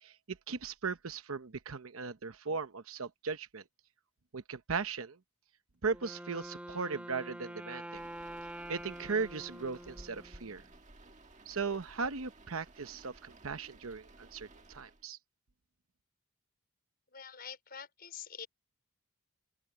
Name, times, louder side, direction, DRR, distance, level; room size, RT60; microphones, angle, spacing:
voice 1, 0.0-3.6 4.3-5.2 5.8-8.0 8.7-10.6 11.5-15.2, right 4 dB, 80° right, 0.9 m, -37 dB
Wind instrument woodwind instrument, 5.8-10.7, right 1 dB, 5° right, 1.4 m, -46 dB
sound 1, 7.9-15.1, right 2 dB, 35° right, 1.7 m, -56 dB
voice 2, 17.1-18.5, left 7 dB, 45° left, 5.5 m, -46 dB
open air
head